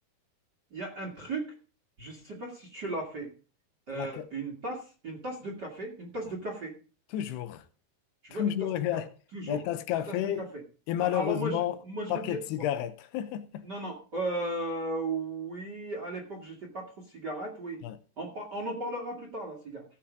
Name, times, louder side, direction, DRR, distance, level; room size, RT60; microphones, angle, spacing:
voice 1, 0.7-1.6 2.0-3.3 3.9-6.7 8.2-9.0 9.3-9.6 10.0-10.6 11.0-12.4 13.6-17.8 18.2-19.9, right 2 dB, 35° right, 1.9 m, -36 dB
voice 2, 3.9-4.3 7.1-7.6 8.4-9.1 9.5-10.5 10.9-11.8 12.1-13.6 17.8-18.0, left 12 dB, 80° left, 2.9 m, -31 dB
16.5 x 5.8 x 5.1 m
omnidirectional pair, 4.7 m